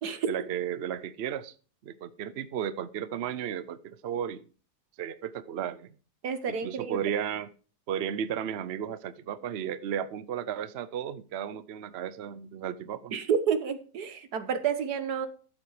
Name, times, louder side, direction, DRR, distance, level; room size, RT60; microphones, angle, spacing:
voice 1, 0.3-1.5 1.8-4.4 5.0-6.0 6.5-7.5 7.9-13.1, right 9 dB, 55° right, 16 dB, 0.7 m, -34 dB
voice 2, 6.2-7.0 13.1-15.3, right 7 dB, 75° right, 11 dB, 1.7 m, -29 dB
12.5 x 7.5 x 4.9 m, 0.39 s
omnidirectional pair, 1.7 m